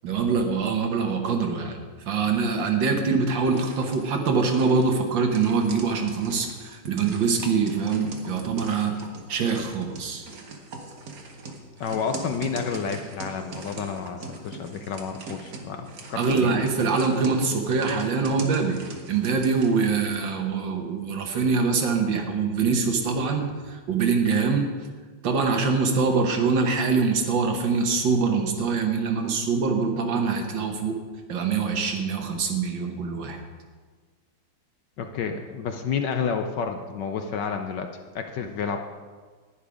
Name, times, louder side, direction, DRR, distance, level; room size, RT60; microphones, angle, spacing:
voice 1, 0.0-1.8 2.1-9.0 9.3-10.2 16.2-18.8 19.1-24.7 25.2-31.0 31.3-33.4, right 5 dB, 65° right, 4 dB, 1.8 m, -24 dB
sound 1, 3.4-19.7, right 3 dB, 50° right, 1.5 m, -40 dB
voice 2, 11.8-16.5 35.0-37.9 38.1-38.8, left 6 dB, 70° left, 6 dB, 1.1 m, -30 dB
11.0 x 10.0 x 4.9 m, 1.5 s
omnidirectional pair, 2.3 m